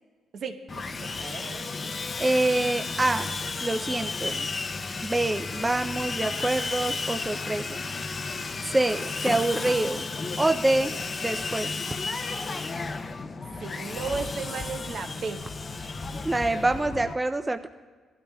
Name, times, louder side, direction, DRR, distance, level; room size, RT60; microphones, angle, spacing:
voice 1, 0.3-1.7 9.0-9.1 13.6-15.4 15.7-15.9, right 4 dB, 60° right, 6 dB, 1.0 m, -35 dB
Sawing, 0.7-17.1, left 4 dB, 35° left, 0.6 m, -33 dB
voice 2, 2.2-3.3 3.6-4.5 5.0-7.8 8.6-10.1 10.4-10.9 11.2-11.8 16.2-17.7, right 2 dB, 15° right, 7 dB, 0.4 m, -26 dB
18.5 x 12.5 x 2.3 m, 1.5 s
cardioid pair, 90°, 0 cm